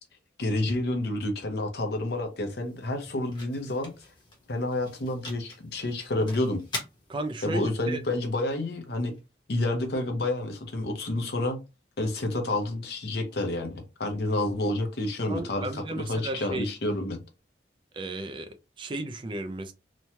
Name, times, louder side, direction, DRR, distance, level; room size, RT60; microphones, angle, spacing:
voice 1, 0.4-3.9 4.5-6.6 7.4-9.1 9.5-11.6 12.0-17.2, left 1 dB, 60° left, 0.7 m, -29 dB
sound 1, 1.9-9.8, left 2 dB, 25° left, 0.8 m, -45 dB
voice 2, 7.1-8.0 15.3-16.7 17.9-18.5 18.8-19.7, right 2 dB, 25° right, 0.3 m, -34 dB
3.0 x 2.2 x 2.7 m
head